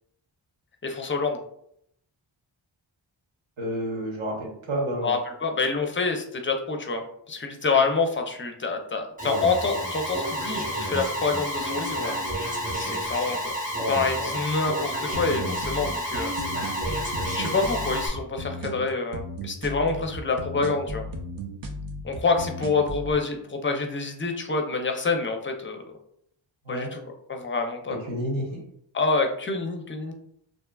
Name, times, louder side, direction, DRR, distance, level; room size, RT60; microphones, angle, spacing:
voice 1, 0.8-1.4 5.0-12.1 12.7-13.5 13.9-16.3 17.3-21.0 22.0-25.9 26.7-27.0 27.3-28.0 28.9-30.1, left 4 dB, 25° left, 4 dB, 0.4 m, -27 dB
voice 2, 3.6-5.1 26.6-26.9 27.9-28.6, right 1 dB, 75° right, -2 dB, 1.0 m, -30 dB
Alarm, 9.2-18.1, equal, 15° right, 0.8 m, -30 dB
sound 1, 15.1-23.1, equal, 50° right, 0.5 m, -36 dB
2.6 x 2.3 x 2.2 m, 0.71 s
cardioid pair, 45°, 48 cm